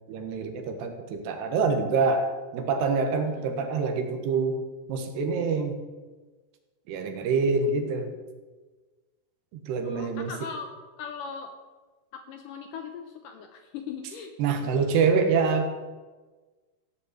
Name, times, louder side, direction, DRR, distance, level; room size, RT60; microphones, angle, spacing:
voice 1, 0.1-2.3 2.5-4.6 4.9-5.8 6.9-8.1 9.5-10.3 14.4-15.7, right 4 dB, 90° right, 5 dB, 3.5 m, -26 dB
voice 2, 3.4-3.7 9.8-10.7 11.0-11.5 12.1-14.3 14.6-14.8, left 6 dB, 70° left, 5 dB, 2.1 m, -39 dB
15.5 x 5.6 x 8.2 m, 1.3 s
omnidirectional pair, 4.7 m